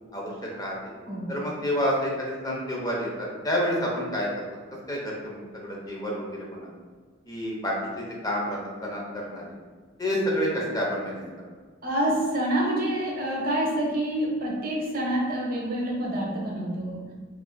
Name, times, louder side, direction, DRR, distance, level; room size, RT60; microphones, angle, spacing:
voice 1, 0.1-0.8 1.3-4.3 4.9-6.7 7.3-9.4 10.0-11.2, equal, 20° left, -3 dB, 0.5 m, -29 dB
voice 2, 11.8-17.0, right 1 dB, 45° right, -2 dB, 0.7 m, -27 dB
2.5 x 2.4 x 3.8 m, 1.5 s
head